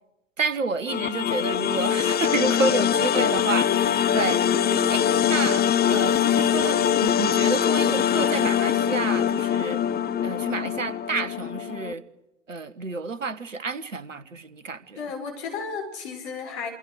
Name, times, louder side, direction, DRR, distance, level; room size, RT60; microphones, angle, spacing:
voice 1, 0.4-4.4 4.7-9.8 10.2-12.0 12.5-15.0, right 4 dB, 80° right, 18 dB, 1.3 m, -30 dB
sound 1, 0.9-11.9, left 9 dB, 25° left, 1.2 m, -23 dB
voice 2, 14.9-16.7, left 5 dB, 60° left, 4 dB, 6.7 m, -34 dB
27.5 x 23.5 x 6.6 m, 0.93 s
figure-of-eight pair, 80°, 38 cm